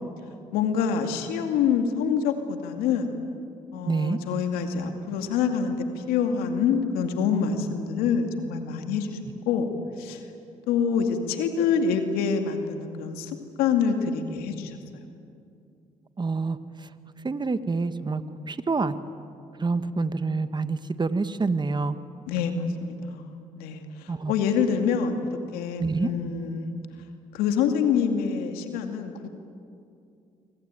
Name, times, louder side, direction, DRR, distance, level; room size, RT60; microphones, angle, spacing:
voice 1, 0.5-3.2 3.7-9.2 9.5-9.7 10.0-10.2 10.7-13.3 13.6-14.8 22.3-26.7 27.3-29.3, left 6 dB, 90° left, 6 dB, 2.4 m, -26 dB
voice 2, 3.8-4.2 16.2-16.6 17.2-18.2 18.5-18.9 19.6-22.0 24.1-24.3 25.8-26.1, right 4 dB, 30° right, 11 dB, 1.6 m, -27 dB
25.5 x 24.0 x 9.2 m, 2.5 s
supercardioid pair, 60°, 15 cm